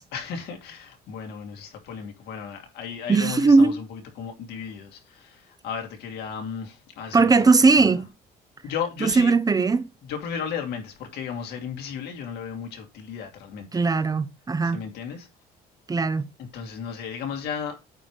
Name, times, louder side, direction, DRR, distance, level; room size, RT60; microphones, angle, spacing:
voice 1, 0.1-7.5 7.7-7.9 8.6-9.3 10.1-13.7 14.7-15.3 16.5-17.8, left 7 dB, 75° left, 2.7 m, -34 dB
voice 2, 3.1-3.8 7.1-8.1 9.0-9.9 13.7-14.8 15.9-16.3, right 4 dB, 20° right, 0.7 m, -19 dB
8.9 x 3.2 x 6.6 m
cardioid pair, 110°, 17 cm